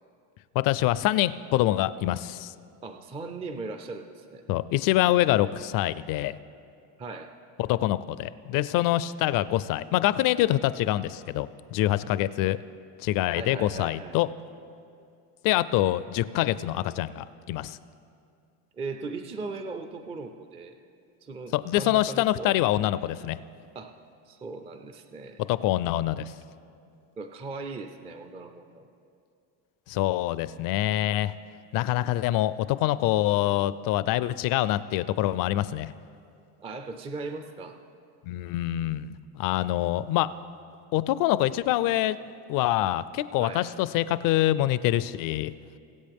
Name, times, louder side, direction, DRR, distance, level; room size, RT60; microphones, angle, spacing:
voice 1, 0.5-2.5 4.5-6.4 7.6-12.6 13.0-14.3 15.4-17.8 21.5-23.4 25.5-26.3 29.9-31.3 31.7-35.9 38.2-40.3 40.9-42.2 42.5-45.5, left 14 dB, 55° left, 16 dB, 0.5 m, -25 dB
voice 2, 2.8-4.4 7.0-7.3 13.4-14.2 18.7-20.8 21.2-22.6 23.7-24.0 24.3-25.4 27.2-28.9 36.6-37.8 43.4-43.7, right 3 dB, 15° right, 7 dB, 0.4 m, -38 dB
21.5 x 8.1 x 3.5 m, 2.5 s
cardioid pair, 135°, 40 cm